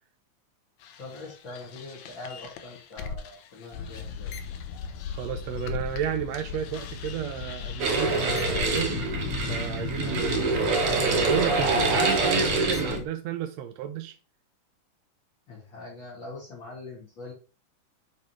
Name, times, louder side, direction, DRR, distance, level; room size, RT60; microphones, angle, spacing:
sound 1, 0.8-6.1 6.3-13.1, left 5 dB, 70° left, 2.0 m, -36 dB
voice 1, 1.0-4.3 10.0-10.3 15.5-17.3, left 2 dB, 40° left, 2.9 m, -43 dB
sound 2, 3.7-9.6, left 7 dB, 90° left, 2.5 m, -38 dB
voice 2, 5.1-14.1, right 10 dB, 80° right, 1.6 m, -32 dB
sound 3, 7.8-13.0, right 3 dB, 55° right, 1.9 m, -26 dB
8.7 x 4.2 x 3.1 m
omnidirectional pair, 3.6 m